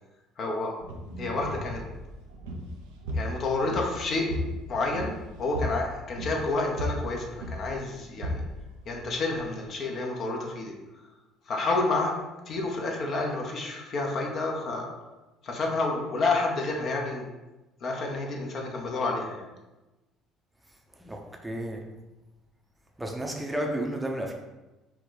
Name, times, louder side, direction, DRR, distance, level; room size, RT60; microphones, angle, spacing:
voice 1, 0.4-0.7 1.2-1.8 3.1-4.3 4.7-5.1 5.4-8.4 8.9-10.7 11.5-12.1 12.5-14.9 15.4-17.3 17.8-19.5, left 3 dB, 50° left, 0 dB, 0.8 m, -29 dB
sound 1, 0.8-9.5, left 1 dB, 80° right, 0.6 m, -36 dB
voice 2, 21.0-21.8 23.0-24.3, right 1 dB, 10° right, 2 dB, 0.7 m, -32 dB
4.6 x 2.4 x 3.8 m, 1.1 s
hypercardioid pair, 60°, 0 cm